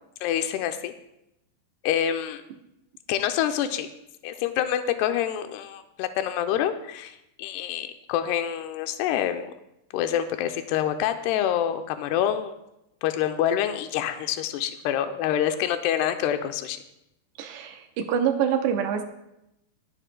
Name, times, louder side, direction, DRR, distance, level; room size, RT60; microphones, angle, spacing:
voice 1, 0.2-0.9 1.8-2.4 3.1-3.9 4.2-9.5 9.9-12.5 13.0-16.8, left 10 dB, 85° left, 7 dB, 2.4 m, -26 dB
voice 2, 17.4-19.0, right 8 dB, 75° right, 5 dB, 2.6 m, -25 dB
22.0 x 10.0 x 2.2 m, 0.86 s
omnidirectional pair, 5.4 m